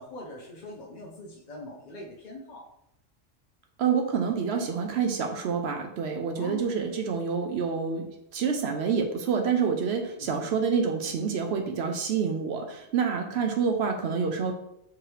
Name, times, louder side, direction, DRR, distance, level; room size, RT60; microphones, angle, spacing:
voice 1, 0.0-2.6 6.4-6.8 10.2-10.4, left 2 dB, 50° left, -2 dB, 0.6 m, -42 dB
voice 2, 3.8-14.5, right 6 dB, 65° right, 4 dB, 0.7 m, -27 dB
4.6 x 3.0 x 3.1 m, 0.80 s
omnidirectional pair, 1.3 m